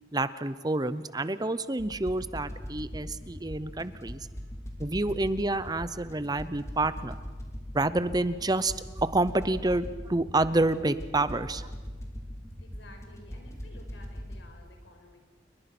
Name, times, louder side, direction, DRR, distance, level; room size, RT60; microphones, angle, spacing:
voice 1, 0.1-4.2 4.8-7.1 7.7-11.7, right 2 dB, 20° right, 14 dB, 0.8 m, -28 dB
sound 1, 1.8-14.4, equal, 15° left, 3.3 m, -41 dB
voice 2, 4.2-4.5 12.6-15.2, left 1 dB, 75° left, 3 dB, 5.4 m, -54 dB
29.0 x 22.0 x 6.1 m, 1.4 s
head